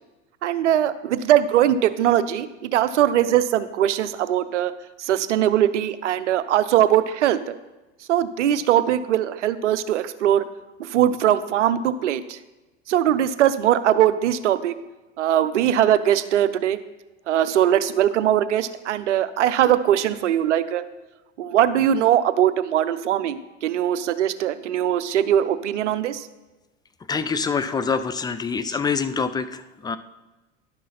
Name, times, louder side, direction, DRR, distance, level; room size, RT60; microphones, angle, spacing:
voice 1, 0.4-4.7 5.0-7.5 8.1-10.4 10.8-12.4 12.9-14.7 15.2-16.8 17.3-20.8 21.4-26.3, right 11 dB, 80° right, 13 dB, 0.6 m, -21 dB
voice 2, 27.1-30.0, left 5 dB, 10° left, 12 dB, 0.4 m, -25 dB
11.0 x 6.1 x 4.2 m, 1.1 s
hypercardioid pair, 80°, 35 cm